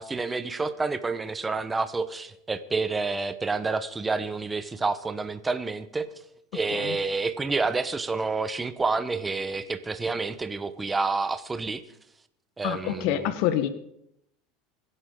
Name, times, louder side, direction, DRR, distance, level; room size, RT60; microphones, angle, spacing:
voice 1, 0.0-6.1 6.5-11.8 12.6-13.3, right 3 dB, 15° right, 11 dB, 1.0 m, -29 dB
voice 2, 12.6-13.7, left 11 dB, 65° left, 11 dB, 1.1 m, -27 dB
25.0 x 11.0 x 3.8 m, 0.75 s
supercardioid pair, 115°, 0 cm